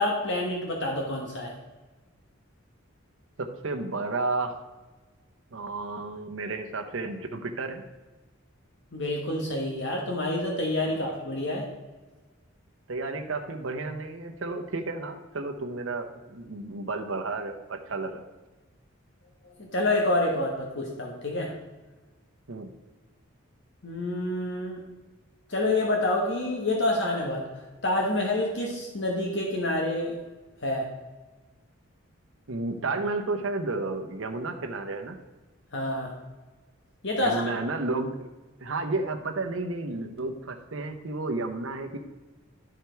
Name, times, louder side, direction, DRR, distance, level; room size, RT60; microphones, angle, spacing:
voice 1, 0.0-1.5 8.9-11.6 19.4-21.5 23.8-24.8 25.5-27.5 27.8-30.1 30.6-30.9 35.7-36.1 37.0-37.4, left 1 dB, 60° left, 0 dB, 1.3 m, -27 dB
voice 2, 3.4-4.5 5.5-7.8 10.9-11.0 12.9-18.2 22.5-22.7 32.5-35.2 37.2-38.3 38.6-42.0, right 3 dB, 65° right, 4 dB, 0.8 m, -32 dB
12.0 x 5.1 x 4.5 m, 1.2 s
head